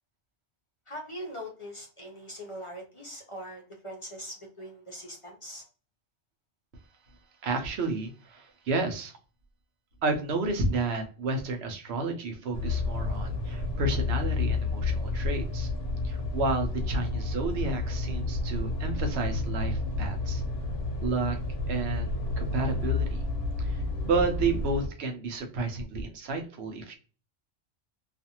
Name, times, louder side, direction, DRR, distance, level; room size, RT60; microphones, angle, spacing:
voice 1, 0.9-5.6, equal, 35° left, 0 dB, 0.6 m, -41 dB
voice 2, 7.4-9.1 10.0-15.7 16.0-20.4 21.0-21.4 21.7-22.1 22.4-23.2 23.6-27.0, right 3 dB, 80° right, 5 dB, 0.9 m, -31 dB
sound 1, 12.5-24.9, left 3 dB, 75° left, 0.9 m, -30 dB
2.5 x 2.4 x 2.7 m, 0.36 s
omnidirectional pair, 1.1 m